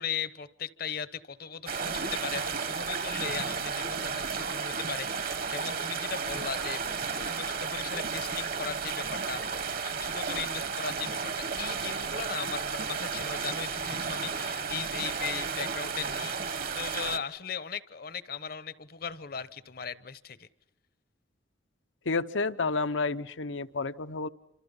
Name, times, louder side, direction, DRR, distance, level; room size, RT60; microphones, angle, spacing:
voice 1, 0.0-20.5, left 7 dB, 50° left, 16 dB, 0.9 m, -38 dB
sound 1, 1.7-17.2, right 5 dB, 50° right, 1.4 m, -33 dB
voice 2, 22.1-24.3, left 3 dB, 80° left, 12 dB, 0.9 m, -30 dB
29.0 x 26.5 x 5.5 m, 0.84 s
head